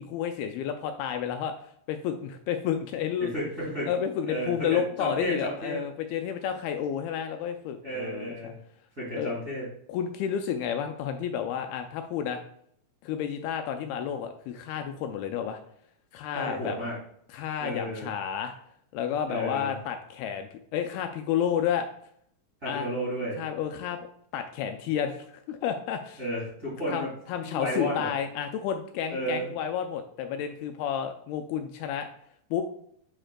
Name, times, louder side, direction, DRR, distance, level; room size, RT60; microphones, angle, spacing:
voice 1, 0.0-1.5 1.9-3.3 3.9-8.5 9.2-9.3 9.9-12.4 13.0-15.6 16.1-16.8 17.3-18.5 18.9-21.9 22.7-22.9 23.4-24.0 24.3-26.2 26.9-32.1 32.5-32.6, left 8 dB, 80° left, 6 dB, 2.3 m, -31 dB
voice 2, 3.3-3.9 4.3-5.8 7.8-8.6 9.0-9.6 16.3-16.9 17.6-18.1 19.3-19.7 22.6-23.4 26.2-27.1 27.4-28.1 29.1-29.5, equal, 25° right, -8 dB, 1.8 m, -32 dB
8.8 x 4.9 x 2.2 m, 0.67 s
omnidirectional pair, 4.5 m